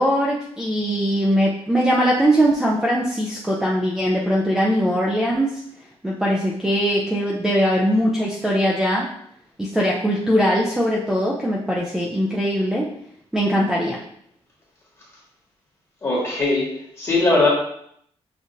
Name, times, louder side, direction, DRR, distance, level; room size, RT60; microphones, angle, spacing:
voice 1, 0.0-5.6 6.0-9.1 9.6-12.9 13.3-14.0, equal, 5° right, -4 dB, 0.4 m, -21 dB
voice 2, 16.0-16.7 17.0-17.5, left 2 dB, 25° left, -5 dB, 1.5 m, -19 dB
6.1 x 2.5 x 2.6 m, 0.69 s
wide cardioid pair, 170°, 10 cm